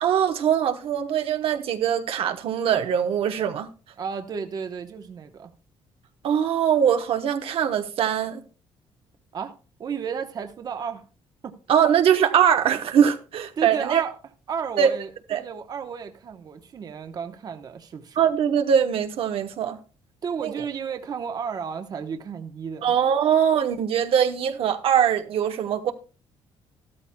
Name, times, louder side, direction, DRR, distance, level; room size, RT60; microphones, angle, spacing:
voice 1, 0.0-3.7 6.2-8.4 11.7-14.0 14.8-14.9 15.3-15.4 18.2-19.8 20.4-20.5 22.8-25.9, right 8 dB, 60° right, 1.0 m, -22 dB
voice 2, 4.0-5.5 9.3-9.5 9.8-11.0 11.4-11.6 13.6-14.1 14.5-18.2 20.2-22.9, right 6 dB, 35° right, 1.0 m, -33 dB
14.5 x 13.0 x 2.2 m
cardioid pair, 160°, 11 cm